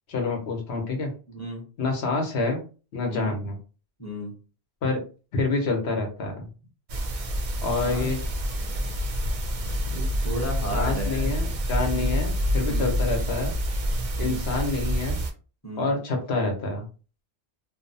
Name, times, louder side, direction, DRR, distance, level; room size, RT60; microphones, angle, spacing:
voice 1, 0.1-1.1 1.8-2.6 2.9-3.6 4.8-5.0 5.3-6.5 7.6-8.2 10.7-13.5 14.2-15.2 15.8-16.9, left 3 dB, 75° left, 3 dB, 1.0 m, -27 dB
voice 2, 1.3-1.6 3.1-3.3 4.0-4.4 7.8-8.1 8.6-8.9 9.9-11.3 11.9-12.2 12.7-12.9 14.2-14.5 15.6-15.9, equal, 15° left, -3 dB, 0.8 m, -34 dB
sound 1, 6.9-15.3, equal, 55° right, 0.4 m, -27 dB
2.7 x 2.0 x 2.6 m, 0.35 s
omnidirectional pair, 1.1 m